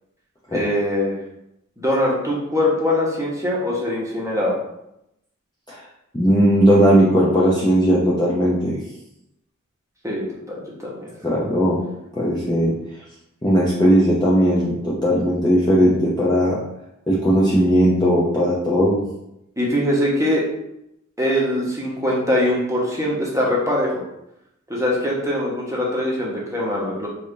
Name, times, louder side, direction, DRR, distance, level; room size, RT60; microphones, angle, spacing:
voice 1, 0.5-1.2 1.8-4.6 10.0-11.1 19.6-20.4 21.2-24.0 24.7-27.1, left 1 dB, 10° right, -5 dB, 1.2 m, -22 dB
voice 2, 6.1-8.8 11.2-11.8 12.2-12.7 13.4-16.6 17.1-19.0, equal, 15° left, -7 dB, 0.7 m, -17 dB
3.5 x 2.7 x 3.4 m, 0.83 s
wide cardioid pair, 45°, 31 cm